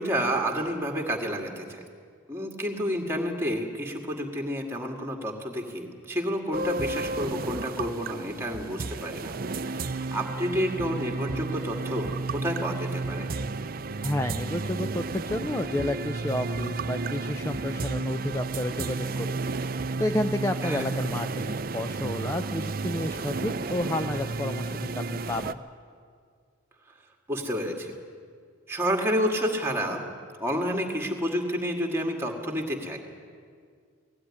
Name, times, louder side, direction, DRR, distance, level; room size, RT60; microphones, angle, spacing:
voice 1, 0.0-1.8 2.3-9.3 9.6-13.3 20.6-20.9 27.3-27.9 28.7-30.0 30.4-33.0, equal, 10° right, 2 dB, 1.9 m, -30 dB
sound 1, 6.5-25.5, right 3 dB, 45° right, 0.5 m, -32 dB
voice 2, 14.0-19.4 20.0-25.6, left 1 dB, 15° left, 7 dB, 0.4 m, -31 dB
19.0 x 15.5 x 9.8 m, 2.1 s
head